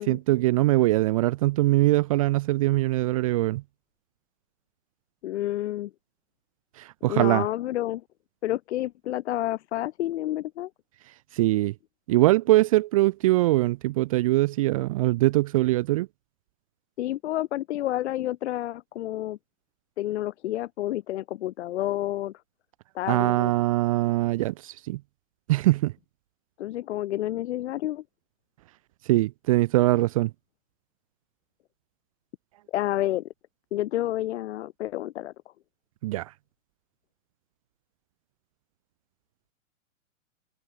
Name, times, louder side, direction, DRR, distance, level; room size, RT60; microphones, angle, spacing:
voice 1, 0.0-3.6 6.8-7.5 11.3-11.7 12.1-16.1 23.1-25.0 25.5-25.9 29.1-30.3 36.0-36.3, right 18 dB, 30° right, 0.4 m, -22 dB
voice 2, 5.2-5.9 7.1-8.0 8.4-10.7 17.0-19.4 20.0-22.3 22.9-23.5 26.6-28.0 32.7-33.2 33.7-35.3, left 14 dB, 60° left, 1.0 m, -29 dB
hypercardioid pair, 135°, 39 cm